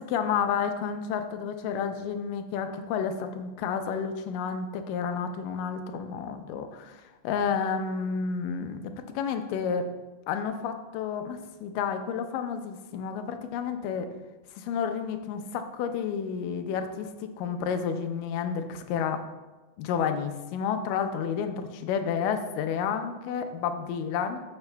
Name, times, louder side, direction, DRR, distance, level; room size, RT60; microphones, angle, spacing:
voice 1, 0.0-9.9 10.3-14.1 14.6-19.2 19.8-24.4, left 7 dB, 85° left, 7 dB, 2.3 m, -30 dB
12.5 x 7.0 x 2.2 m, 1.2 s
omnidirectional pair, 3.8 m